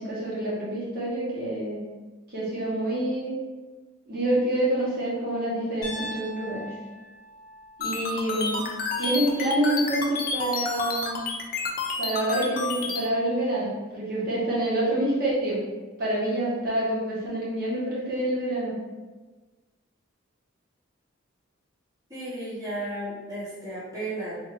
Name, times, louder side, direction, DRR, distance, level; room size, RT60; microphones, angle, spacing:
voice 1, 0.0-1.8 2.3-3.3 4.1-6.7 7.8-8.6 9.0-11.2 12.0-15.6 16.0-18.7, right 1 dB, 45° right, -6 dB, 1.1 m, -27 dB
Piano, 5.8-9.9, left 1 dB, 15° left, 1.1 m, -42 dB
sound 1, 7.8-13.0, left 3 dB, 45° left, 0.4 m, -30 dB
voice 2, 22.1-24.3, right 1 dB, 15° right, -12 dB, 1.0 m, -34 dB
3.7 x 2.5 x 3.1 m, 1.3 s
head